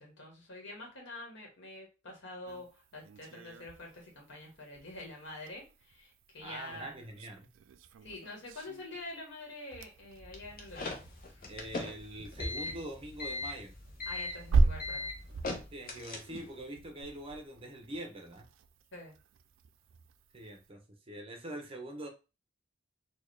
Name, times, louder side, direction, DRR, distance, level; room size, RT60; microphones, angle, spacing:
voice 1, 0.0-7.0 8.0-10.9 11.3-11.5 14.1-15.1 18.9-19.2, left 2 dB, 65° left, 0 dB, 1.2 m, -46 dB
sound 1, 2.5-20.7, right 3 dB, 85° right, 0.3 m, -38 dB
voice 2, 6.4-7.5 11.5-13.7 15.7-18.5 20.3-22.1, right 1 dB, 30° right, 3 dB, 0.8 m, -44 dB
sound 2, 10.1-15.8, equal, 15° left, 0.5 m, -54 dB
sound 3, 10.3-16.6, left 2 dB, 45° left, 0.8 m, -39 dB
4.2 x 2.3 x 3.2 m, 0.30 s
head